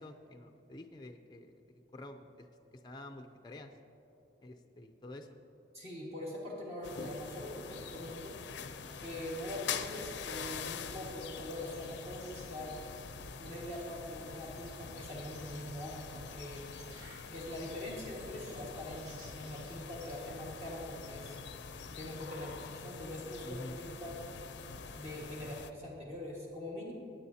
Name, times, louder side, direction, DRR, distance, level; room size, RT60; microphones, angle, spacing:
voice 1, 0.0-1.6 1.9-2.5 2.8-3.7 4.4-5.4 23.4-23.8, left 1 dB, 25° left, 4 dB, 0.5 m, -48 dB
voice 2, 5.7-8.4 9.0-12.7 13.4-16.7 17.3-21.4 22.0-24.1 25.0-26.9, left 1 dB, 35° right, -4 dB, 1.8 m, -43 dB
sound 1, 6.1-21.2, right 1 dB, 75° right, 2.9 m, -64 dB
sound 2, 6.8-25.7, left 6 dB, 75° left, 0.5 m, -45 dB
22.0 x 8.9 x 2.8 m, 2.8 s
head